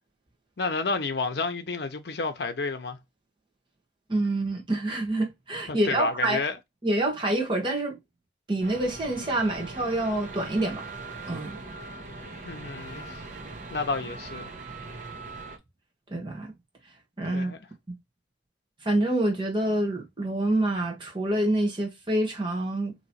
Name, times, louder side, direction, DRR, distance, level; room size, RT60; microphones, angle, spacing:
voice 1, 0.6-3.0 5.7-6.6 12.4-13.2 13.7-14.5 17.3-17.6, left 3 dB, 60° left, 0.7 m, -30 dB
voice 2, 4.1-6.4 6.8-8.0 8.5-10.9 11.3-11.6 16.1-16.5 17.2-17.5 17.9-18.0 18.8-22.9, right 1 dB, 25° right, 1.2 m, -27 dB
sound 1, 8.6-15.6, right 3 dB, 45° right, 0.8 m, -40 dB
3.0 x 2.9 x 4.1 m
head